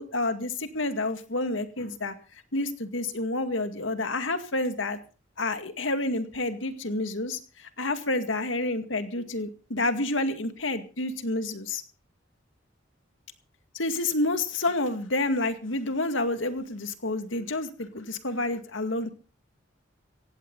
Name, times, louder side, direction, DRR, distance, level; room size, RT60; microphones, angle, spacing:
voice 1, 0.0-2.1 2.5-5.0 5.4-11.8 13.7-19.1, left 2 dB, 85° left, 8 dB, 2.2 m, -29 dB
17.5 x 16.0 x 4.0 m, 0.37 s
head